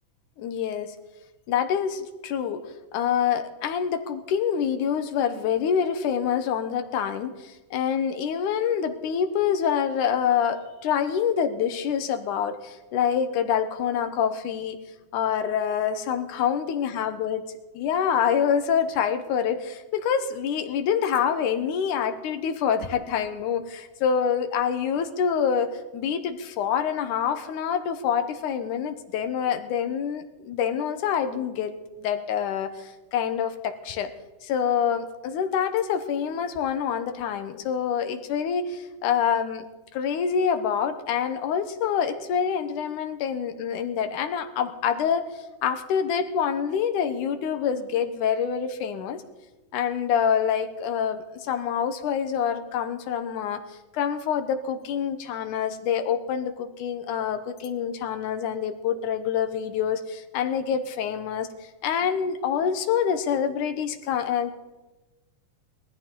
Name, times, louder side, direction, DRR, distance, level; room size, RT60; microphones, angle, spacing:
voice 1, 0.4-1.0 1.5-14.8 15.1-17.4 17.7-34.1 34.4-39.6 39.9-49.2 49.7-64.5, left 8 dB, 80° left, 9 dB, 2.5 m, -26 dB
20.0 x 14.0 x 3.8 m, 1.1 s
omnidirectional pair, 3.6 m